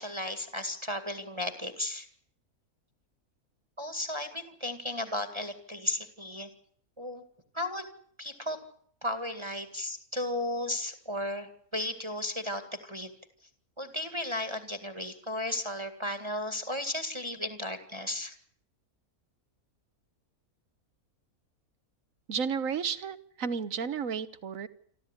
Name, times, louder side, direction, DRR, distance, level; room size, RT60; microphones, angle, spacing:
voice 1, 0.0-2.1 3.8-6.5 7.0-7.2 7.5-7.8 8.2-8.6 9.0-13.1 13.8-18.4, left 1 dB, 20° right, 8 dB, 2.0 m, -34 dB
voice 2, 22.3-24.7, right 6 dB, 60° right, 14 dB, 1.6 m, -32 dB
28.0 x 13.0 x 9.9 m, 0.63 s
omnidirectional pair, 1.6 m